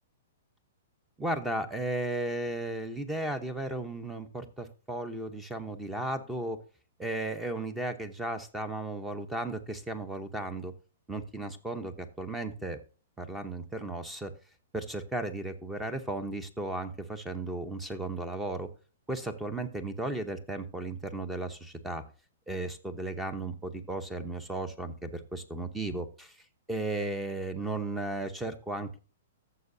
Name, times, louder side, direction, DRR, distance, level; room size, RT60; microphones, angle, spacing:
voice 1, 1.2-6.6 7.0-10.7 11.1-12.8 13.2-14.3 14.7-18.7 19.1-22.0 22.5-26.3 26.7-29.0, right 2 dB, 5° right, 11 dB, 0.8 m, -35 dB
14.5 x 6.8 x 2.7 m, 0.37 s
hypercardioid pair, 150°, 0 cm